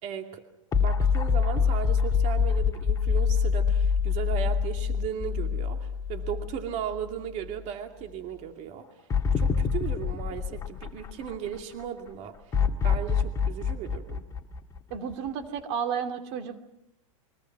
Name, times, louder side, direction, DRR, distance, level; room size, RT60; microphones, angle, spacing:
voice 1, 0.0-0.4 0.8-8.9 9.4-12.3 12.8-14.2, right 9 dB, 40° right, 4 dB, 2.5 m, -36 dB
sound 1, 0.7-7.1 7.4-7.5 9.1-11.6 12.5-15.3, left 6 dB, 20° left, 1.8 m, -26 dB
voice 2, 14.9-16.6, right 7 dB, 55° right, 7 dB, 2.6 m, -32 dB
29.0 x 23.5 x 6.0 m, 0.83 s
supercardioid pair, 130°, 17 cm